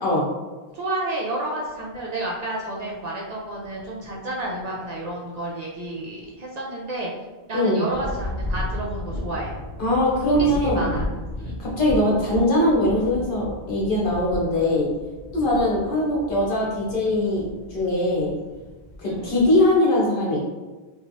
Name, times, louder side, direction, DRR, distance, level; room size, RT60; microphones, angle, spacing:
voice 1, 0.7-7.1 7.5-9.5 10.4-11.0 11.4-11.6 19.0-19.3, right 1 dB, 55° right, -3 dB, 0.5 m, -30 dB
sound 1, 0.9-1.0 1.7-2.0 2.3-6.6 6.9-7.0 7.9-19.8, left 1 dB, 90° left, 0.9 m, -35 dB
voice 2, 9.8-10.9 11.6-14.9 15.3-17.4 17.7-18.3 19.0-20.4, left 1 dB, 55° left, -4 dB, 1.0 m, -21 dB
3.0 x 2.3 x 2.6 m, 1.2 s
omnidirectional pair, 1.1 m